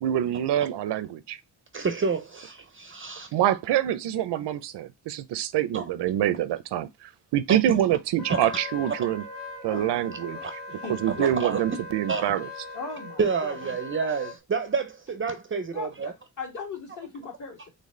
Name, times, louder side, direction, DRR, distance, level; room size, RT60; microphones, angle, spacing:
voice 1, 0.0-1.4 3.3-9.2 9.6-10.4 11.0-12.5, right 11 dB, 90° right, 0.6 m, -26 dB
voice 2, 1.7-3.3 5.7-5.8 7.5-7.8 8.3-8.5 10.4-10.5 11.2-11.6 12.1-12.3 13.2-16.1, right 5 dB, 30° right, 0.4 m, -29 dB
Wind instrument woodwind instrument, 8.2-14.4, left 2 dB, 80° left, 1.6 m, -40 dB
voice 3, 9.7-11.3 12.7-13.6 15.7-17.7, left 4 dB, 50° left, 1.9 m, -39 dB
4.1 x 3.3 x 3.1 m
wide cardioid pair, 175°, 40 cm